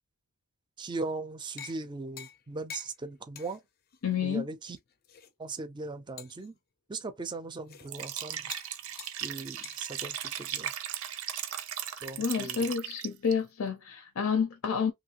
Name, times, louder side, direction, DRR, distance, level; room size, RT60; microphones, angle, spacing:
voice 1, 0.8-3.6 4.2-4.8 5.4-6.6 6.9-8.5 9.2-10.7 12.0-12.7, right 3 dB, 20° right, 0.4 m, -39 dB
sound 1, 1.6-1.8 2.2-2.4 2.7-2.9 3.4-3.6 3.9-4.0 4.8-5.3 6.2-6.5 7.7-7.9 8.5-8.7 9.0-9.2 9.6-9.8, left 8 dB, 45° left, 0.4 m, -45 dB
voice 2, 4.0-4.5 12.2-14.9, left 6 dB, 90° left, 0.6 m, -29 dB
Liquid, 7.9-13.3, right 10 dB, 75° right, 0.5 m, -37 dB
3.0 x 2.7 x 2.8 m
head